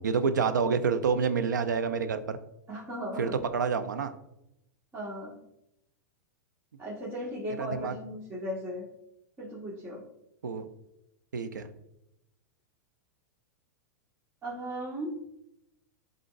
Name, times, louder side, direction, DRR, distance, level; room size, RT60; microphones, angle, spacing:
voice 1, 0.0-2.4 3.2-4.1 7.6-7.9 10.4-10.7 11.3-11.7, right 5 dB, 90° right, 9 dB, 0.6 m, -28 dB
voice 2, 2.7-3.5 4.9-5.3 6.8-8.9 9.4-10.0 14.4-15.2, equal, 25° right, -7 dB, 1.7 m, -36 dB
11.0 x 3.8 x 2.6 m, 0.84 s
hypercardioid pair, 110°, 10 cm